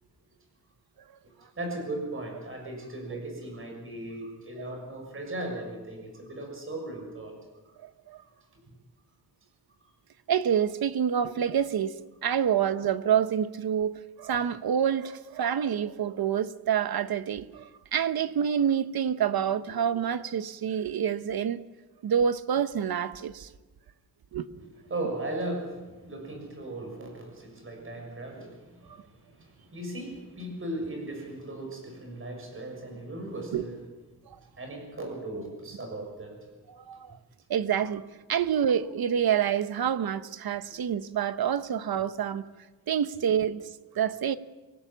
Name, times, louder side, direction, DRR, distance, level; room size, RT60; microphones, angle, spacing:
voice 1, 1.2-7.4 24.6-33.8 34.6-36.4, right 1 dB, 35° right, 6.6 m, -37 dB
voice 2, 7.8-8.2 10.3-11.9 12.2-21.6 22.0-23.5 24.3-24.5 28.9-29.0 33.5-33.6 34.3-34.4 36.7-37.2 37.5-42.5 42.9-43.7 43.9-44.4, right 8 dB, 70° right, 1.0 m, -27 dB
24.5 x 19.0 x 7.4 m
wide cardioid pair, 165°, 38 cm